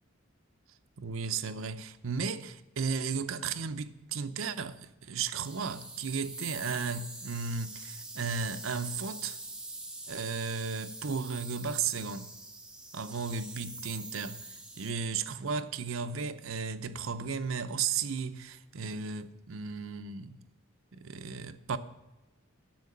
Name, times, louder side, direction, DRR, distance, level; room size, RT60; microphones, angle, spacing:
voice 1, 1.0-9.4 10.1-12.3 12.9-14.5 14.8-20.4 20.9-21.8, right 5 dB, 75° right, 0.7 m, -34 dB
sound 1, 5.4-14.9, right 2 dB, 5° right, 1.1 m, -45 dB
10.5 x 6.7 x 8.5 m
head